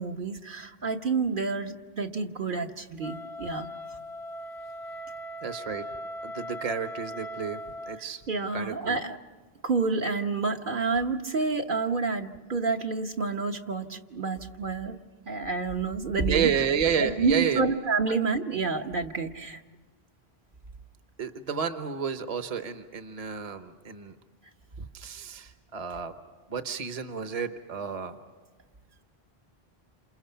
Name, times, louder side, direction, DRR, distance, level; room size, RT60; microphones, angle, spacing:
voice 1, 0.0-3.7 8.3-9.2 9.6-15.0 15.3-16.5 17.0-19.6, right 4 dB, 55° right, 3 dB, 1.2 m, -29 dB
Wind instrument woodwind instrument, 3.0-8.0, equal, 85° left, 1.3 m, -39 dB
voice 2, 5.4-5.8 6.2-7.6 7.9-8.2 8.5-9.0 16.3-17.6 21.2-24.1 24.8-26.1 26.5-28.2, right 7 dB, 40° right, 8 dB, 1.1 m, -31 dB
28.5 x 27.0 x 5.8 m, 1.3 s
omnidirectional pair, 1.1 m